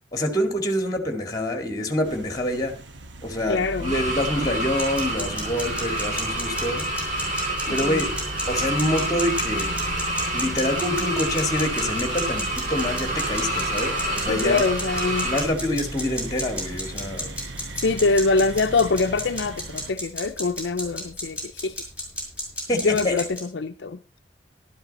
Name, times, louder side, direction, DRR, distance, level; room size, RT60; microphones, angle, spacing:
voice 1, 0.1-2.8 3.2-6.9 7.7-8.1 8.5-9.7 10.3-14.6 15.2-17.4 22.7-23.2, left 1 dB, 20° left, 2.1 m, -26 dB
Construction Dumpster Delivery, 2.0-19.9, right 1 dB, 80° right, 1.1 m, -38 dB
voice 2, 3.5-3.9 7.7-8.0 14.3-15.3 17.8-21.8 22.7-24.2, left 3 dB, 70° left, 0.6 m, -24 dB
sound 1, 3.8-15.5, right 1 dB, 45° right, 3.9 m, -28 dB
sound 2, 4.8-23.4, left 1 dB, 10° right, 5.6 m, -34 dB
12.5 x 12.0 x 4.1 m
head